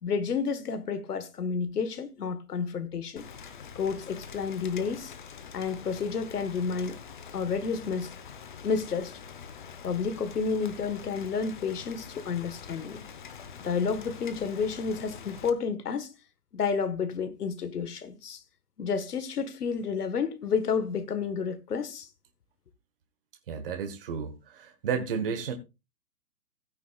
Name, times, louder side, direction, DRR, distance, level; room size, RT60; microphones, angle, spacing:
voice 1, 0.0-3.2 3.7-5.1 5.5-7.0 7.3-8.1 8.6-9.2 9.8-13.0 13.6-16.1 16.5-18.4 18.8-22.1, left 5 dB, 70° left, 1.6 m, -30 dB
Rain, 3.2-15.5, left 6 dB, 30° left, 1.0 m, -45 dB
voice 2, 23.5-25.5, right 6 dB, 35° right, 1.5 m, -32 dB
16.0 x 9.5 x 2.4 m
hypercardioid pair, 165°, 48 cm